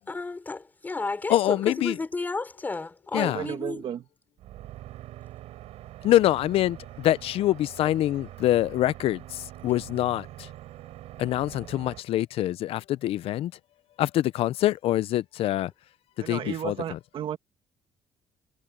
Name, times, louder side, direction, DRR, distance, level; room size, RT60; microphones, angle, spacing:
voice 1, 0.1-3.8, left 3 dB, 15° left, 5.3 m, -32 dB
voice 2, 1.3-2.0 3.1-3.4 6.0-10.5 11.2-13.5 14.0-15.7 16.3-17.0, left 14 dB, 65° left, 0.5 m, -25 dB
voice 3, 3.1-4.0 16.2-17.4, right 10 dB, 55° right, 2.0 m, -33 dB
sound 1, 4.4-12.0, right 14 dB, 80° right, 7.3 m, -44 dB
cardioid pair, 150°, 11 cm